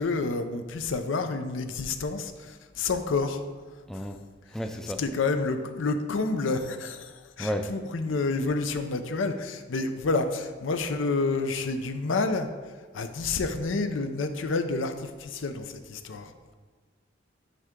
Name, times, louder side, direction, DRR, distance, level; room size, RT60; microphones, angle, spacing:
voice 1, 0.0-3.4 5.0-12.5 12.9-16.3, left 3 dB, 80° left, 8 dB, 0.5 m, -29 dB
voice 2, 4.5-5.0 7.4-7.7, equal, ahead, 5 dB, 0.3 m, -31 dB
9.2 x 3.6 x 3.6 m, 1.4 s
head